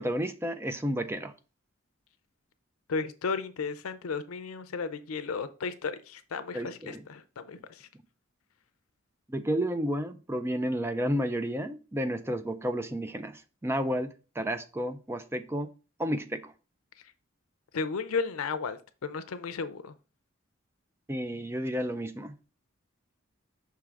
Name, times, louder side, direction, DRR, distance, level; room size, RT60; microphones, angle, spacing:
voice 1, 0.0-1.3 6.5-7.0 9.3-15.7 16.0-16.5 21.1-22.3, equal, 10° right, 0.4 m, -31 dB
voice 2, 2.9-7.9 17.7-19.9, left 5 dB, 85° left, 0.5 m, -34 dB
5.8 x 3.7 x 4.5 m
head